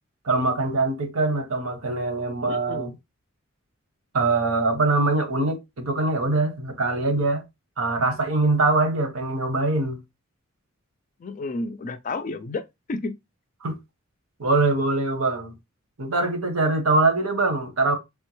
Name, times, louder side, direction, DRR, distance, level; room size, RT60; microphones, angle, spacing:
voice 1, 0.2-2.9 4.1-7.4 7.8-10.0 13.6-13.8 14.4-15.6 16.0-18.0, right 2 dB, 85° right, 0.9 m, -23 dB
voice 2, 2.4-3.0 11.2-12.6 12.9-13.1, left 3 dB, 40° left, 0.3 m, -31 dB
3.4 x 2.2 x 3.0 m
head